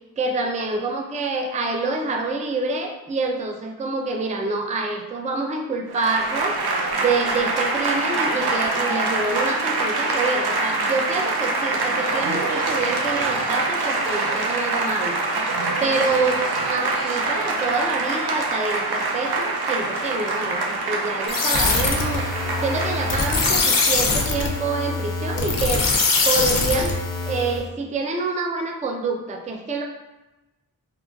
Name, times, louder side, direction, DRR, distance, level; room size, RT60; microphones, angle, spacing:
voice 1, 0.2-15.2 15.8-22.3 22.6-25.9 26.2-29.8, right 3 dB, 20° right, 2 dB, 0.3 m, -27 dB
Applause / Crowd, 5.9-24.4, right 3 dB, 90° right, 0.5 m, -25 dB
sound 1, 21.3-27.6, left 3 dB, 60° left, 0.5 m, -23 dB
3.7 x 2.2 x 2.3 m, 1.0 s
wide cardioid pair, 50°, 37 cm